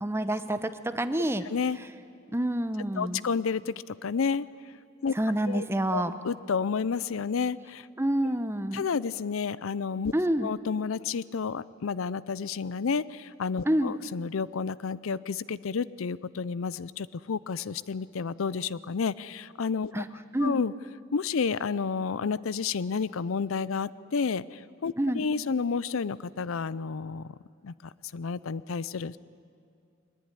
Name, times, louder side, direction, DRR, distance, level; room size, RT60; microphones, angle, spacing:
voice 1, 0.0-1.4 2.3-3.2 5.1-6.1 8.0-8.8 10.1-10.5 13.6-14.0 19.9-20.0 20.3-20.6 25.0-25.2, right 1 dB, 10° right, 10 dB, 0.9 m, -27 dB
voice 2, 1.4-1.8 3.0-4.5 5.0-5.1 5.5-5.6 5.9-7.9 8.7-10.1 10.4-20.0 20.4-20.7 21.1-27.3 27.6-27.7 28.1-29.2, left 5 dB, 80° left, 19 dB, 0.5 m, -30 dB
22.0 x 19.5 x 10.0 m, 2.5 s
head